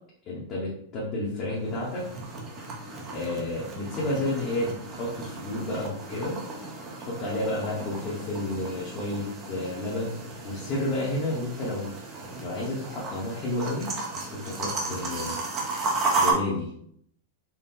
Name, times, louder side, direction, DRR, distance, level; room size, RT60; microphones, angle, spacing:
voice 1, 0.3-2.0 3.1-6.4 7.0-10.1 10.4-11.9 12.4-13.9 14.3-15.4 16.2-16.7, left 1 dB, 25° left, -6 dB, 0.9 m, -31 dB
sound 1, 1.5-16.3, right 3 dB, 20° right, 0.6 m, -34 dB
4.2 x 2.1 x 3.8 m, 0.67 s
supercardioid pair, 165°, 0 cm